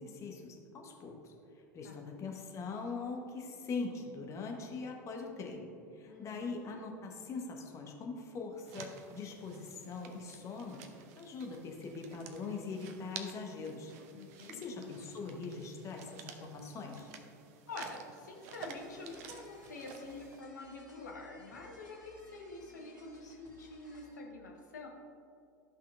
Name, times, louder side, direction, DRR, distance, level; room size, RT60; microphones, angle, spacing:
voice 1, 0.0-13.9 14.5-17.1, left 4 dB, 30° left, 2 dB, 1.1 m, -42 dB
voice 2, 6.0-6.6 14.1-14.9 17.7-24.9, left 3 dB, 70° left, 0 dB, 1.2 m, -47 dB
sound 1, 8.6-20.4, right 6 dB, 50° right, 0.7 m, -51 dB
sound 2, 18.3-24.2, left 1 dB, 90° right, 1.6 m, -61 dB
13.0 x 5.7 x 2.5 m, 2.5 s
figure-of-eight pair, 80°, 10 cm